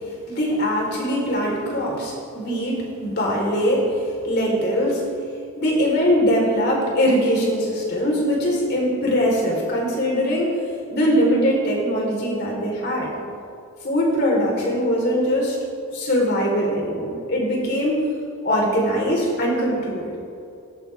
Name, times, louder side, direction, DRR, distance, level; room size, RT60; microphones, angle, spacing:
voice 1, 0.3-5.1 5.6-10.5 10.9-13.1 13.8-15.6 15.9-18.0 18.4-20.1, equal, 45° left, -2 dB, 4.1 m, -21 dB
18.0 x 17.5 x 3.6 m, 2.6 s
head